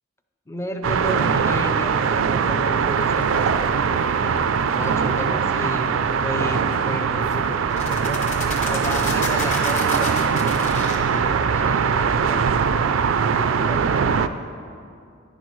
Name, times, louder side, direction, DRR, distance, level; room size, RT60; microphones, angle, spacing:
voice 1, 0.5-4.4 4.7-8.2 8.6-12.7 13.3-14.3, left 1 dB, 15° left, 6 dB, 0.4 m, -33 dB
sound 1, 0.8-14.3, right 6 dB, 75° right, 0.4 m, -21 dB
sound 2, 3.2-3.5 6.7-6.8 7.3-7.4 7.7-11.0, left 3 dB, 40° left, 1.2 m, -31 dB
11.0 x 10.0 x 3.1 m, 2.4 s
head